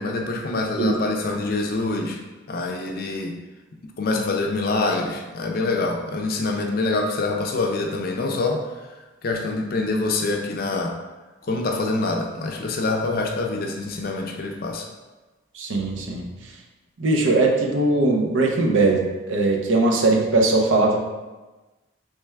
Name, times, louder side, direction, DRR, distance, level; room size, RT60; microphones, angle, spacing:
voice 1, 0.0-2.2 2.5-3.3 4.0-8.7 9.2-10.9 11.4-14.9, left 3 dB, 45° left, 2 dB, 0.4 m, -25 dB
voice 2, 15.6-16.2 17.0-21.0, right 2 dB, 70° right, 1 dB, 0.6 m, -20 dB
3.4 x 3.2 x 3.2 m, 1.2 s
head